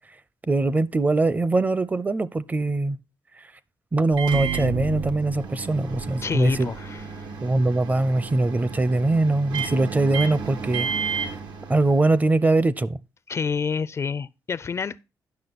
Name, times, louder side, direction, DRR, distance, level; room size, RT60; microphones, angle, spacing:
voice 1, 0.5-3.0 3.9-6.7 7.4-10.9 11.7-13.0, right 2 dB, 20° right, 0.6 m, -22 dB
Microwave oven, 4.1-12.3, right 6 dB, 85° right, 1.5 m, -32 dB
voice 2, 6.2-7.3 13.3-15.0, left 6 dB, 40° left, 0.4 m, -28 dB
10.5 x 6.3 x 4.0 m
cardioid pair, 95°, 7 cm